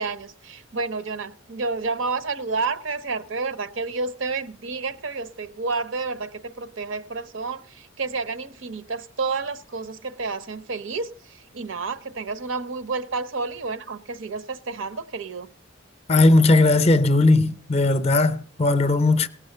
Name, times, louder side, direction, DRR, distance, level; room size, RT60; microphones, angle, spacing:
voice 1, 0.0-15.5, right 4 dB, 70° right, 0.8 m, -30 dB
voice 2, 16.1-19.3, left 2 dB, 30° left, 0.6 m, -18 dB
18.0 x 6.2 x 6.6 m
head